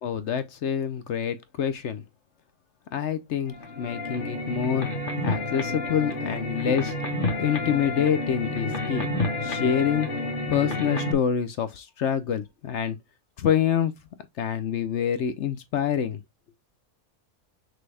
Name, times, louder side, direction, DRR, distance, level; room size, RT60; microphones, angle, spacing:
voice 1, 0.0-2.0 2.9-4.9 5.2-6.9 7.4-9.1 9.4-13.0 13.4-13.9 14.4-16.2, left 8 dB, 60° left, 0.8 m, -26 dB
sound 1, 3.5-11.1, left 2 dB, 35° left, 1.4 m, -29 dB
6.1 x 2.3 x 3.3 m
omnidirectional pair, 1.6 m